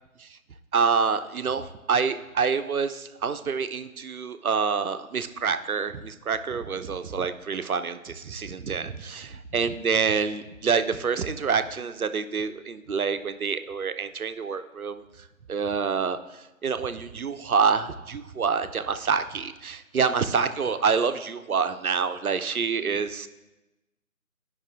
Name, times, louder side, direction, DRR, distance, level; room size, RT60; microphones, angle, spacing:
voice 1, 0.7-15.0 15.5-23.3, right 5 dB, 85° right, 10 dB, 0.6 m, -27 dB
12.5 x 5.3 x 2.5 m, 1.0 s
figure-of-eight pair, 165°, 42 cm